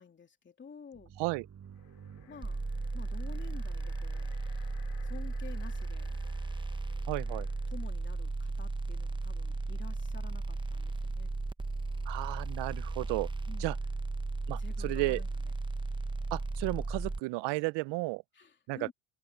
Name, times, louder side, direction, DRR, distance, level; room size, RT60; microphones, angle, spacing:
voice 1, 0.0-1.1 2.3-2.6 2.9-4.3 5.0-6.2 7.3-11.3 13.5-13.7 14.6-15.5 17.5-17.7 18.3-18.9, left 6 dB, 25° left, 3.2 m, -51 dB
sound 1, 0.9-4.5, right 8 dB, 40° right, 6.5 m, -54 dB
sound 2, 1.6-8.1, left 16 dB, 80° left, 3.7 m, -60 dB
sound 3, 2.4-17.2, right 3 dB, 10° right, 0.9 m, -35 dB
voice 2, 7.1-7.5 12.1-13.3 13.6-13.7 14.5-15.2 16.3-18.2 18.7-18.9, right 23 dB, 75° right, 0.6 m, -33 dB
cardioid pair, 110°, 43 cm